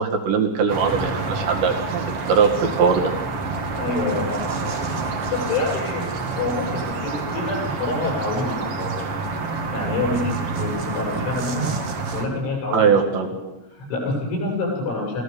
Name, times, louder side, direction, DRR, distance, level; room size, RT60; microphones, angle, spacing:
voice 1, 0.0-3.1 12.7-13.3, right 5 dB, 70° right, 4 dB, 4.3 m, -20 dB
sound 1, 0.7-12.3, right 3 dB, 50° right, 1.7 m, -28 dB
voice 2, 3.7-6.1 6.4-9.1 9.7-11.7 12.1-13.4 13.7-15.2, left 3 dB, 85° left, -1 dB, 10.5 m, -27 dB
25.5 x 17.5 x 7.1 m, 0.95 s
omnidirectional pair, 5.4 m